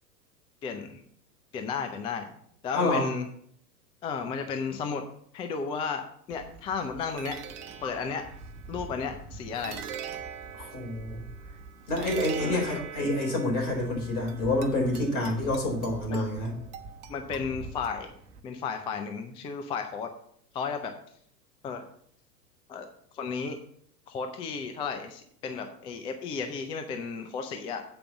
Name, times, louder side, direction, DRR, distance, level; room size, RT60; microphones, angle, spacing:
voice 1, 0.6-1.0 1.5-2.3 2.6-3.3 4.0-5.0 5.3-7.4 7.8-8.3 8.7-9.8 12.4-12.8 16.1-16.2 17.1-18.1 18.4-20.1 20.5-20.9 21.6-21.8 22.7-22.9 23.1-23.6 24.1-27.8, left 5 dB, 10° left, 6 dB, 0.4 m, -33 dB
voice 2, 2.7-3.1 10.5-11.2 11.9-16.5, left 2 dB, 60° left, 0 dB, 4.3 m, -28 dB
sound 1, 6.3-18.4, right 6 dB, 45° right, 1.1 m, -41 dB
7.9 x 5.0 x 7.1 m, 0.64 s
hypercardioid pair, 100°, 49 cm